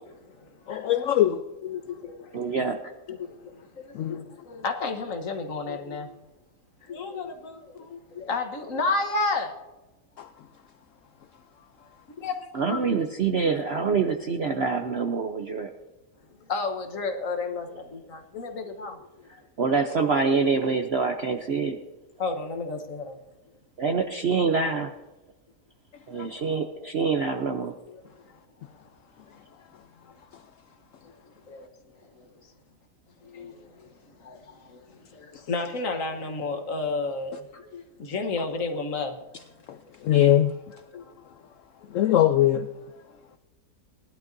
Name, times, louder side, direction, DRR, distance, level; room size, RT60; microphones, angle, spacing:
voice 1, 0.1-0.9 1.6-2.5 3.1-6.1 6.8-9.5 12.1-12.4 12.7-12.9 16.4-19.3 22.2-23.2 27.8-28.3 29.3-29.4 31.0-32.5 33.2-39.2 40.9-41.1, left 3 dB, 55° left, 5 dB, 1.4 m, -32 dB
voice 2, 0.7-1.5 3.9-4.2 10.2-10.3 26.2-26.3 39.7-40.6 41.9-42.7, left 12 dB, 80° left, 9 dB, 0.7 m, -22 dB
voice 3, 2.3-2.8 12.5-15.7 19.6-21.8 23.8-24.9 26.1-27.7, right 5 dB, 60° right, 5 dB, 0.6 m, -25 dB
19.5 x 11.5 x 2.6 m, 1.1 s
omnidirectional pair, 1.9 m